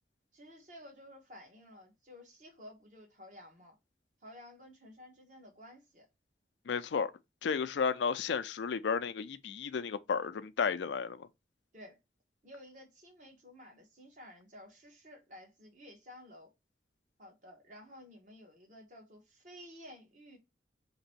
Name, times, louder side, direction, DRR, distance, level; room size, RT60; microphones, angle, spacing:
voice 1, 0.3-3.7 4.2-6.1 11.7-12.0 12.4-16.5 17.2-20.4, left 1 dB, 45° right, 1.1 m, -53 dB
voice 2, 6.7-7.1 7.4-11.3, left 6 dB, 90° left, 0.4 m, -33 dB
2.9 x 2.7 x 4.1 m
head